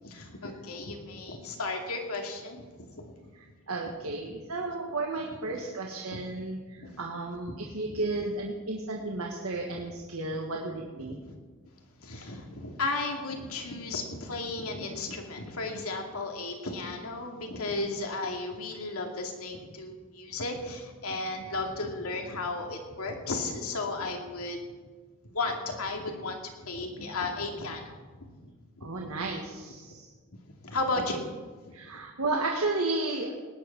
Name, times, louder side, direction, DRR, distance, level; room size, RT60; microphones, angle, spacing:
voice 1, 0.0-3.1 3.6-3.8 5.2-5.6 6.1-6.2 6.8-7.0 7.9-8.0 9.8-9.9 11.0-11.1 12.0-24.6 25.2-29.2 30.6-31.3 31.6-32.0, left 3 dB, 85° left, 2 dB, 2.5 m, -35 dB
voice 2, 3.7-11.2 28.8-30.1 31.7-33.3, right 2 dB, 85° right, 0 dB, 1.6 m, -33 dB
18.5 x 9.8 x 5.9 m, 1.4 s
head